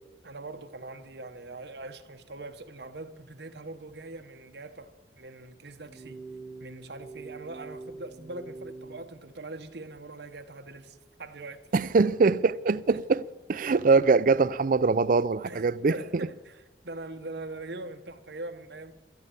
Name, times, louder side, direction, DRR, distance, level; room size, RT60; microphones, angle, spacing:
voice 1, 0.2-6.2 6.6-11.9 12.9-13.0 15.4-18.9, right 2 dB, 65° right, 1.1 m, -42 dB
sound 1, 5.8-9.1, right 3 dB, 20° right, 1.0 m, -44 dB
voice 2, 11.7-13.2 13.5-16.0, right 4 dB, 50° right, 0.5 m, -23 dB
13.5 x 11.0 x 8.3 m
head